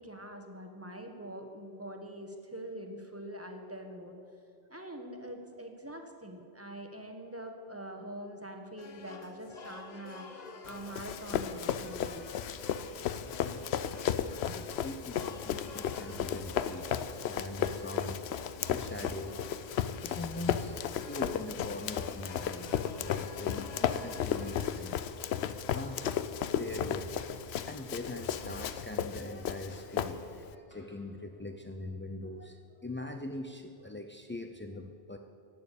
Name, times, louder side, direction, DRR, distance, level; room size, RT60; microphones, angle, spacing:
voice 1, 0.0-4.2 4.7-12.2, right 1 dB, 15° right, 3 dB, 1.2 m, -44 dB
sound 1, 8.8-25.0, left 4 dB, 45° left, 0.9 m, -50 dB
Run, 10.7-30.5, left 9 dB, 85° left, 0.8 m, -34 dB
voice 2, 13.3-14.0 14.4-18.3 18.7-19.3 20.0-20.7 21.0-25.1 25.7-26.1 26.5-27.1 27.7-35.2, left 2 dB, 20° left, 4 dB, 0.3 m, -42 dB
sound 2, 15.1-15.2 15.6-15.8 16.1-16.8 17.6-17.8 18.6-19.2 19.6-21.0 21.6-21.8 22.6-23.2 23.6-23.8 24.1-25.0 25.7-25.9 26.7-27.2 27.7-29.0 29.7-29.9 30.7-31.1, equal, 65° left, 3.5 m, -50 dB
11.0 x 9.2 x 8.3 m, 2.4 s
omnidirectional pair, 1.1 m